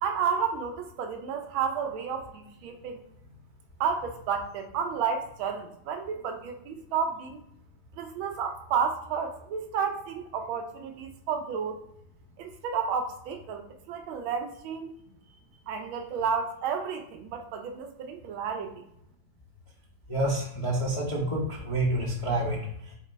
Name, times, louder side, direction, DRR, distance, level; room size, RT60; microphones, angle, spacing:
voice 1, 0.0-3.0 3.8-7.4 8.0-11.8 12.4-14.9 15.7-18.8, right 6 dB, 80° right, 5 dB, 1.4 m, -31 dB
voice 2, 20.1-22.6, right 1 dB, 50° left, -6 dB, 0.3 m, -28 dB
4.0 x 3.7 x 2.5 m, 0.76 s
omnidirectional pair, 2.3 m